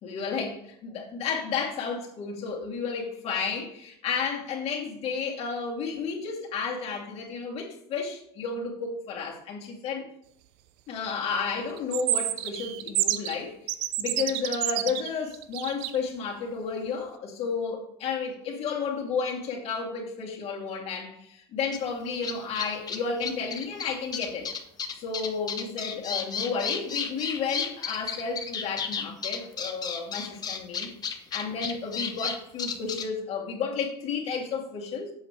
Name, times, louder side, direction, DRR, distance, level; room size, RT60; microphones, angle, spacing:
voice 1, 0.0-10.1 10.9-13.5 14.0-24.5 24.9-35.1, left 5 dB, 45° left, -1 dB, 2.6 m, -32 dB
sound 1, 11.8-13.4 13.7-16.0, right 14 dB, 65° right, 0.7 m, -28 dB
sound 2, 21.7-21.8 22.2-33.1, left 6 dB, 30° left, 1.1 m, -32 dB
7.9 x 5.9 x 4.7 m, 0.71 s
hypercardioid pair, 95°, 14 cm